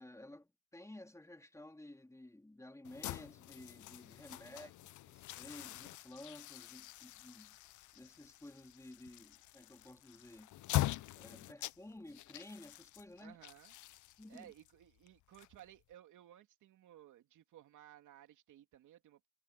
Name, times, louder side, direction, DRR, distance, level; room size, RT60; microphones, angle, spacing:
voice 1, 0.0-4.7 5.1-7.6 7.9-10.6 11.2-13.4 14.2-14.5, left 1 dB, 10° left, 3.2 m, -54 dB
sound 1, 2.8-15.9, left 16 dB, 75° left, 0.7 m, -44 dB
voice 2, 4.3-4.7 13.2-13.7 14.3-19.3, right 12 dB, 80° right, 3.0 m, -58 dB
cardioid pair, 90°, 30 cm